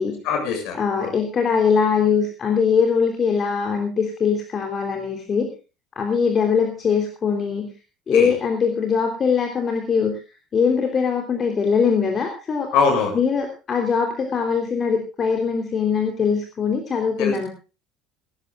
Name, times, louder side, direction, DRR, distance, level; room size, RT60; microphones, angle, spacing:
voice 1, 0.2-1.1 8.1-8.3 12.7-13.2 17.2-17.3, left 5 dB, 55° left, 4 dB, 7.4 m, -22 dB
voice 2, 0.8-5.5 5.9-7.7 8.1-10.2 10.5-12.7 13.1-17.5, left 6 dB, 35° left, 4 dB, 3.4 m, -21 dB
18.5 x 18.5 x 2.4 m, 0.32 s
figure-of-eight pair, 60°, 0 cm